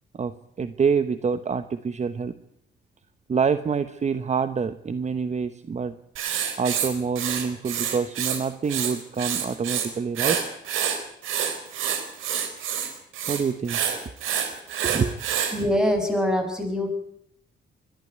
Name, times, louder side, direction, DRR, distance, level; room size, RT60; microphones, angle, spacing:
voice 1, 0.1-2.3 3.3-5.9 6.6-10.4 13.3-13.8 14.8-15.1, right 6 dB, 35° right, 12 dB, 1.0 m, -26 dB
Writing, 6.2-8.4 8.7-9.9 10.2-15.6, right 8 dB, 85° right, 3.8 m, -27 dB
voice 2, 15.5-16.9, left 1 dB, 5° right, 5 dB, 6.5 m, -24 dB
22.0 x 13.0 x 9.4 m, 0.72 s
cardioid pair, 90°, 20 cm